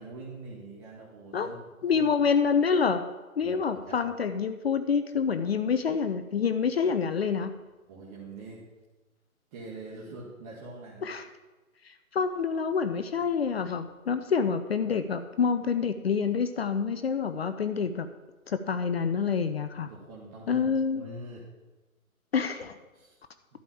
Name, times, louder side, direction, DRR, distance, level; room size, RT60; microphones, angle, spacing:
voice 1, 0.0-1.6 1.9-2.1 3.4-4.1 7.9-8.7 9.5-11.1 19.9-21.4 22.9-23.2, right 2 dB, 25° right, -5 dB, 1.8 m, -44 dB
voice 2, 1.8-3.0 3.4-7.5 11.0-11.3 11.8-18.1 18.5-19.9 20.5-21.0 22.3-22.8, left 6 dB, 45° left, 10 dB, 0.7 m, -27 dB
11.5 x 5.1 x 8.4 m, 1.2 s
figure-of-eight pair, 145°, 43 cm